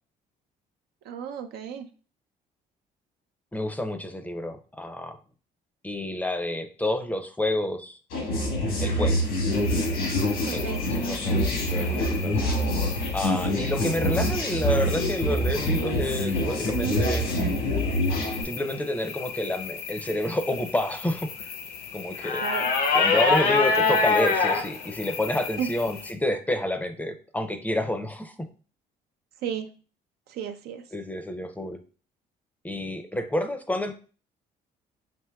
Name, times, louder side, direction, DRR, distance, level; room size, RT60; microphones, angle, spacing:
voice 1, 1.1-1.9 10.4-10.8 16.7-17.0 22.4-22.7 23.8-23.9 25.6-25.7 29.4-29.7 30.3-30.8, right 8 dB, 75° right, 7 dB, 0.5 m, -32 dB
voice 2, 3.5-5.2 5.8-8.0 8.8-9.2 10.5-12.5 13.1-17.3 18.4-21.3 21.9-22.4 22.9-28.5 30.9-31.8 32.6-33.9, left 1 dB, 10° left, 7 dB, 0.5 m, -29 dB
sound 1, 8.1-18.4, equal, 85° left, 1.4 m, -26 dB
sound 2, 9.5-26.1, left 4 dB, 70° left, 0.7 m, -30 dB
5.8 x 2.8 x 2.2 m, 0.38 s
cardioid pair, 85°, 16 cm